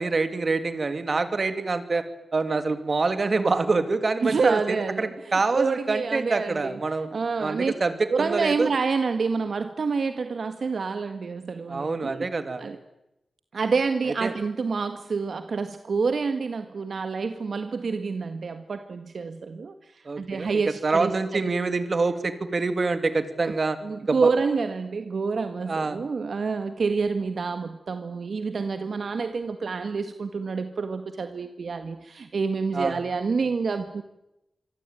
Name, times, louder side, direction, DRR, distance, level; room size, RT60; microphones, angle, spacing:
voice 1, 0.0-2.0 2.3-7.1 7.4-8.7 11.7-12.6 14.2-14.3 20.0-23.8 24.1-24.3 25.7-26.0 32.7-33.0, right 3 dB, 45° right, 10 dB, 2.9 m, -26 dB
voice 2, 4.2-6.8 7.1-7.7 8.1-12.3 12.6-12.8 13.5-21.4 23.4-23.5 23.8-34.0, right 4 dB, 65° right, 8 dB, 1.7 m, -28 dB
26.5 x 24.5 x 9.2 m, 0.91 s
wide cardioid pair, 110°, 0 cm